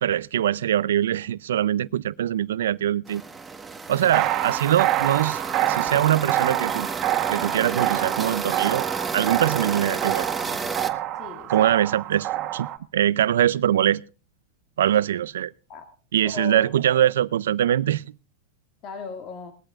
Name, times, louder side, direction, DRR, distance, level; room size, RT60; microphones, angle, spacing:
voice 1, 0.0-3.2 3.9-6.9 7.3-8.9 9.1-10.6 11.5-12.7 12.9-14.0 14.8-15.5 16.1-18.1, right 11 dB, 90° right, 0.5 m, -23 dB
sound 1, 3.1-10.9, right 4 dB, 10° right, 1.4 m, -31 dB
sound 2, 4.1-12.8, right 13 dB, 45° right, 1.6 m, -27 dB
voice 2, 11.1-11.7 15.7-15.9 16.2-16.8 18.8-19.5, left 5 dB, 45° left, 2.0 m, -37 dB
20.0 x 13.5 x 2.4 m
supercardioid pair, 120°, 0 cm